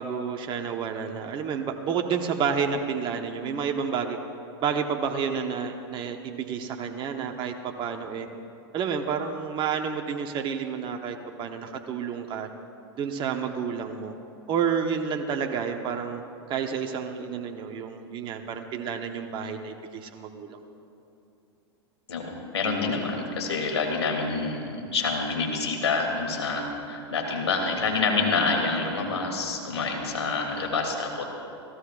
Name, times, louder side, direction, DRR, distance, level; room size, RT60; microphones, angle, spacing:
voice 1, 0.0-4.2 4.6-8.3 8.7-12.5 13.0-14.1 14.5-16.2 16.5-20.6, right 6 dB, 35° right, 4 dB, 1.2 m, -30 dB
voice 2, 22.1-31.2, left 4 dB, 85° left, 1 dB, 3.0 m, -27 dB
28.5 x 17.0 x 2.5 m, 2.7 s
hypercardioid pair, 100°, 14 cm